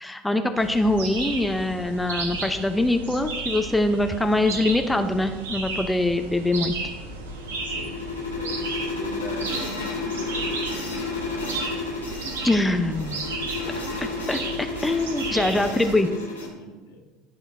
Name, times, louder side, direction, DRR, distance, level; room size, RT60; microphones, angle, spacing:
voice 1, 0.0-6.8 12.4-13.2 14.0-16.1, left 1 dB, 10° left, 7 dB, 0.5 m, -23 dB
sound 1, 0.5-15.9, right 3 dB, 75° right, 0.9 m, -34 dB
sound 2, 7.0-16.5, left 3 dB, 90° left, 1.5 m, -32 dB
voice 2, 7.6-11.6 13.4-13.8 14.8-17.0, left 1 dB, 75° left, 0 dB, 1.4 m, -42 dB
11.0 x 3.9 x 4.1 m, 1.3 s
figure-of-eight pair, 70°, 0 cm